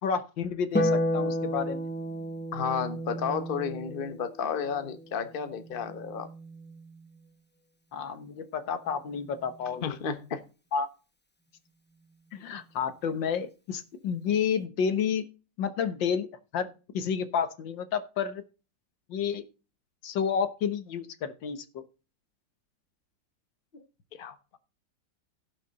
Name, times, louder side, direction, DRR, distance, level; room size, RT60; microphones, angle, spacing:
voice 1, 0.0-1.8 7.9-10.0 10.7-10.9 12.3-15.3 15.6-16.7 16.9-18.4 19.1-19.4 20.0-21.8, left 7 dB, 80° left, 1.8 m, -30 dB
Harp, 0.7-7.3 8.9-9.9, equal, 15° left, 0.4 m, -33 dB
voice 2, 2.5-6.3 9.8-10.4 23.7-23.8 24.1-24.6, left 6 dB, 35° left, 1.0 m, -32 dB
17.0 x 5.7 x 4.0 m
omnidirectional pair, 2.0 m